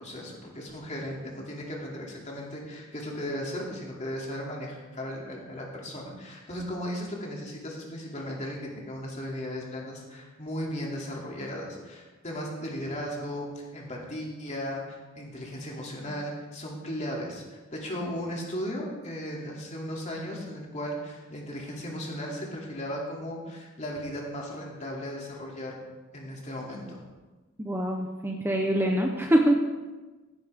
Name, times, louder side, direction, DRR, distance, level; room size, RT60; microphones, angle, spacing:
voice 1, 0.0-17.4 17.7-25.8 26.1-27.0, equal, 35° left, -2 dB, 2.7 m, -36 dB
voice 2, 27.6-29.6, right 1 dB, 10° right, 2 dB, 0.8 m, -24 dB
16.5 x 9.9 x 3.6 m, 1.2 s
head